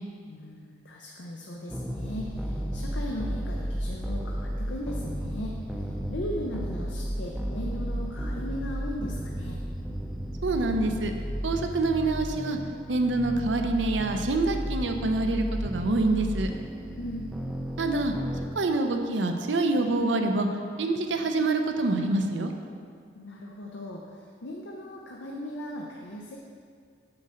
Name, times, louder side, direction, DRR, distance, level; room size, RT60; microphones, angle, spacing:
voice 1, 0.3-9.6 17.0-17.3 23.1-26.4, left 1 dB, 80° left, -1 dB, 0.7 m, -38 dB
sound 1, 1.7-18.5, equal, ahead, 0.5 m, -33 dB
voice 2, 10.4-11.1 11.4-12.6 12.9-16.5 17.8-18.1 18.6-20.5 20.8-22.5, right 2 dB, 85° right, 5 dB, 0.6 m, -26 dB
7.6 x 6.2 x 4.3 m, 2.1 s
head